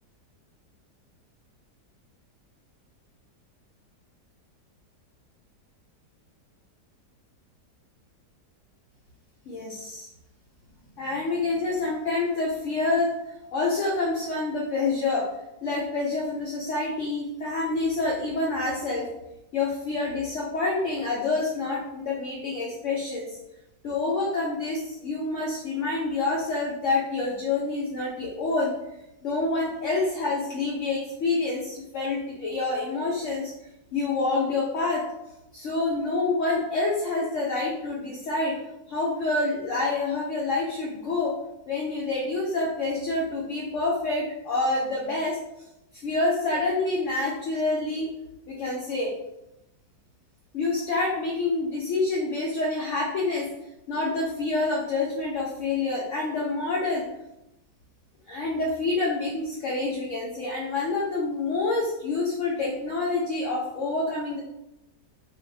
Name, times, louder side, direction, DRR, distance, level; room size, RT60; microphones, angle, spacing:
voice 1, 9.5-10.1 11.0-13.2 13.5-15.3 15.6-19.1 19.5-23.4 23.8-28.7 29.2-33.5 33.9-35.1 35.5-38.6 38.9-41.4 41.7-45.4 46.0-48.1 48.5-49.1 50.5-53.5 53.9-57.1 58.3-64.4, left 3 dB, 65° left, -4 dB, 0.8 m, -27 dB
2.6 x 2.5 x 3.9 m, 0.88 s
omnidirectional pair, 1.8 m